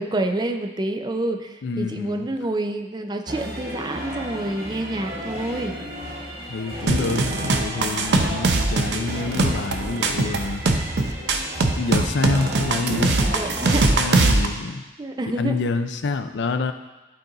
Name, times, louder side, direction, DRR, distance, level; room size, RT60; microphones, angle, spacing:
voice 1, 0.0-5.8 13.2-14.0 15.0-15.6, right 1 dB, 25° right, 6 dB, 0.4 m, -28 dB
voice 2, 1.6-2.3 6.5-10.6 11.7-13.2 13.6-14.8 15.3-16.7, left 3 dB, 80° left, 9 dB, 0.5 m, -27 dB
sound 1, 3.3-14.4, equal, 55° right, 1.4 m, -34 dB
sound 2, 6.9-14.5, right 2 dB, 75° right, 0.6 m, -21 dB
11.5 x 4.1 x 3.9 m, 1.1 s
head